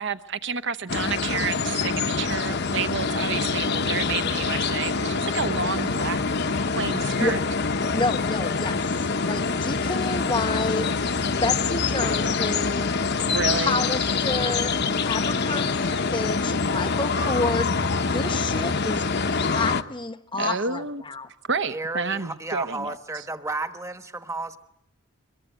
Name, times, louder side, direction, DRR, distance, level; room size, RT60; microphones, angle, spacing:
voice 1, 0.0-6.2 6.8-7.4 13.3-13.8 20.4-21.0 21.5-23.0, right 5 dB, 55° right, 1.0 m, -29 dB
sound 1, 0.9-19.8, left 4 dB, 50° left, 1.0 m, -25 dB
voice 2, 7.9-8.9 9.2-10.9 11.4-13.0 13.5-14.8 15.0-21.3, left 3 dB, 20° left, 1.0 m, -29 dB
voice 3, 21.7-24.6, right 2 dB, 15° right, 1.2 m, -32 dB
23.5 x 22.5 x 9.1 m
head